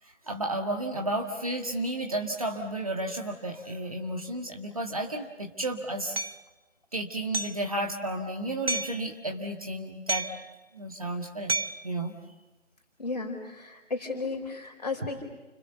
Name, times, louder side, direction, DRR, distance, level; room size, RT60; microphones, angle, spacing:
voice 1, 0.0-6.2 6.9-10.3 10.7-11.5 11.8-12.1, right 1 dB, 30° right, 2 dB, 1.7 m, -32 dB
Hammer, 6.2-6.4 7.3-7.7 8.7-9.0 10.1-10.5 11.5-11.9, right 3 dB, 55° right, 0.9 m, -30 dB
voice 2, 13.0-15.2, left 3 dB, 35° left, 2 dB, 4.9 m, -34 dB
29.5 x 26.0 x 7.0 m, 1.1 s
figure-of-eight pair, 160°, 36 cm